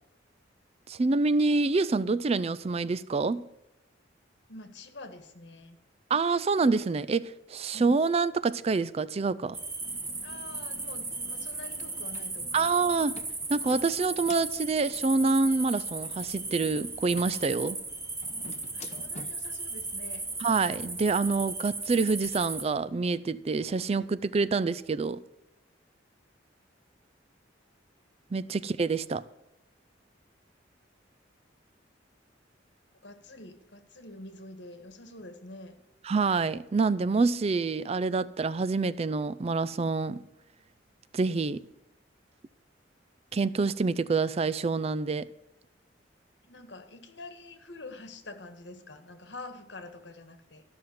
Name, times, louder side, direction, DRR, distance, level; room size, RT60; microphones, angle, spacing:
voice 1, 0.9-3.5 6.1-9.6 12.5-13.2 13.5-17.8 20.4-25.2 28.3-29.2 36.0-40.2 41.1-41.6 43.3-45.3, right 4 dB, 35° right, 0.4 m, -27 dB
voice 2, 4.5-5.8 7.7-8.1 10.2-12.8 18.7-20.3 33.0-35.8 46.4-50.6, left 2 dB, 65° left, 1.7 m, -46 dB
sound 1, 9.5-22.6, right 3 dB, 15° right, 1.2 m, -36 dB
sound 2, 9.8-19.6, left 3 dB, 40° left, 1.0 m, -51 dB
13.5 x 6.1 x 9.4 m
head